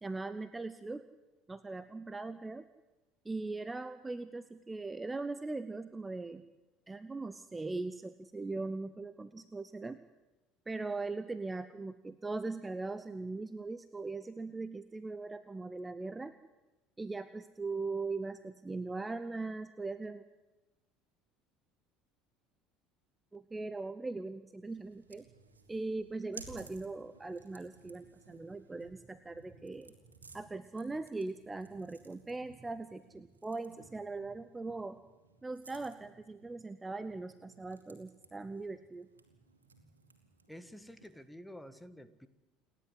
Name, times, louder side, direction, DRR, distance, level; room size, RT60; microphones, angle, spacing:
voice 1, 0.0-1.1 1.5-2.7 3.2-6.4 6.9-10.0 10.7-16.4 17.0-20.2 23.3-25.3 25.7-29.9 30.3-35.0 35.4-39.1, right 3 dB, 15° right, 13 dB, 0.9 m, -40 dB
sound 1, 24.6-41.3, right 4 dB, 85° right, 2.5 m, -58 dB
voice 2, 40.5-42.3, equal, 5° left, 13 dB, 1.7 m, -50 dB
29.0 x 11.5 x 9.8 m, 1.1 s
figure-of-eight pair, 65°, 0 cm